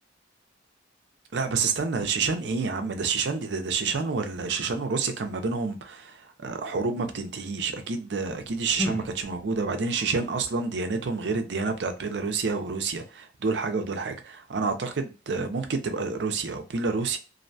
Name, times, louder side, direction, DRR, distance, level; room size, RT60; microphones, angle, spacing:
voice 1, 1.3-17.2, right 4 dB, 65° right, 0.5 m, -28 dB
sound 1, 8.1-9.8, left 1 dB, 10° left, 0.3 m, -36 dB
2.6 x 2.1 x 2.6 m
head